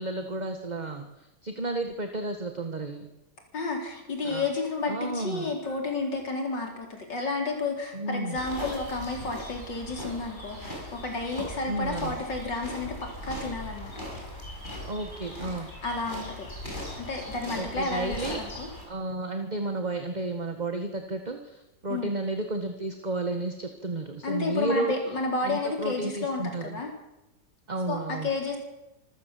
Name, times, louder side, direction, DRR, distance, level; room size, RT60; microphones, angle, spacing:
voice 1, 0.0-3.1 4.2-4.5 4.9-5.5 7.9-8.4 11.7-12.1 14.8-15.7 17.5-18.4 18.9-24.9 25.4-26.8 27.7-28.3, right 2 dB, 25° right, 6 dB, 1.6 m, -32 dB
voice 2, 3.5-13.9 14.3-14.4 15.8-16.5 17.0-18.7 21.9-22.1 24.2-26.9 27.9-28.6, left 3 dB, 90° left, 2 dB, 5.0 m, -31 dB
sound 1, 8.3-18.8, left 1 dB, 25° left, 6.6 m, -39 dB
26.5 x 14.0 x 7.7 m, 0.96 s
omnidirectional pair, 1.9 m